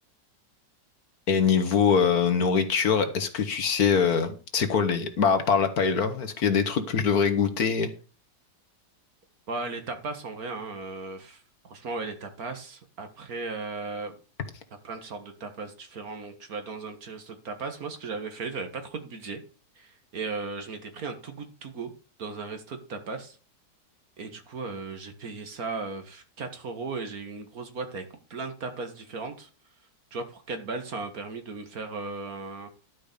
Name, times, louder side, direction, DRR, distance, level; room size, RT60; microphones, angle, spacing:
voice 1, 1.3-7.9, left 6 dB, 60° left, 9 dB, 1.6 m, -23 dB
voice 2, 9.5-14.1 14.8-19.4 19.8-21.9 22.2-23.4 24.2-29.5 30.1-32.7, right 4 dB, 55° right, 7 dB, 1.9 m, -36 dB
12.0 x 5.1 x 6.7 m, 0.36 s
omnidirectional pair, 1.9 m